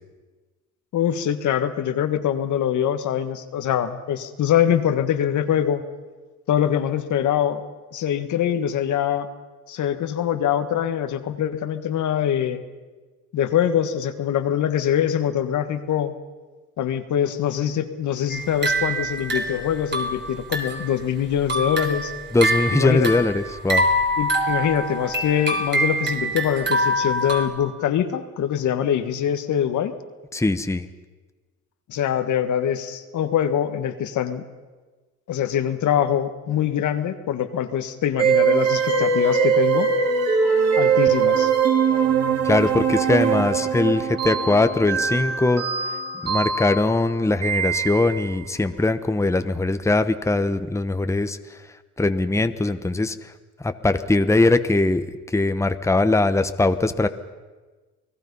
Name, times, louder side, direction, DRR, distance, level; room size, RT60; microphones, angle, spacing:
voice 1, 0.9-5.8 6.5-7.6 7.9-9.3 9.7-12.6 13.3-16.2 16.8-22.1 22.7-23.1 24.2-29.9 31.9-34.4 35.3-39.9 40.8-41.5, left 10 dB, 75° left, 9 dB, 1.6 m, -23 dB
sound 1, 18.3-20.9 21.3-27.5, right 1 dB, 35° right, 3.8 m, -25 dB
voice 2, 22.3-23.9 30.3-30.9 42.4-45.6 46.2-51.6 52.0-53.3 53.6-57.1, left 2 dB, 10° left, 10 dB, 1.0 m, -21 dB
sound 2, 38.2-48.3, right 6 dB, 55° right, 3.4 m, -21 dB
29.0 x 19.0 x 5.5 m, 1.3 s
cardioid pair, 90°, 30 cm